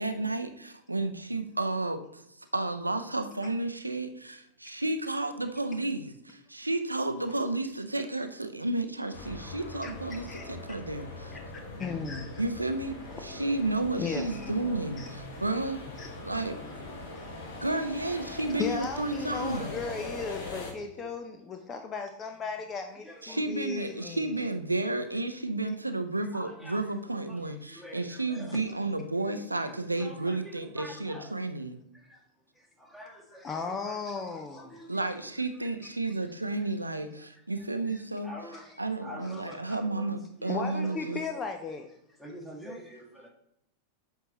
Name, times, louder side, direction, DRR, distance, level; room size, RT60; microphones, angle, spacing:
voice 1, 0.0-2.2 2.5-11.3 12.4-15.0 15.4-15.8 16.2-16.6 17.6-19.8 21.0-21.1 23.2-31.8 34.9-38.3 38.8-41.2, right 2 dB, 85° right, 8 dB, 0.5 m, -32 dB
sound 1, 9.1-20.7, left 2 dB, 55° left, 1.5 m, -41 dB
voice 2, 11.8-12.4 14.0-14.5 15.0-15.1 16.0-16.1 18.3-24.3 33.4-34.8 38.5-38.6 40.5-41.9, left 4 dB, 25° left, 6 dB, 0.5 m, -36 dB
voice 3, 23.0-24.1 26.3-26.9 27.3-28.8 29.3-29.4 29.7-31.3 31.9-32.2 32.5-35.8 36.1-36.3 36.6-37.3 37.6-41.5 42.2-43.3, equal, 5° left, -2 dB, 1.9 m, -48 dB
8.0 x 4.6 x 2.9 m, 0.77 s
figure-of-eight pair, 90°, 0 cm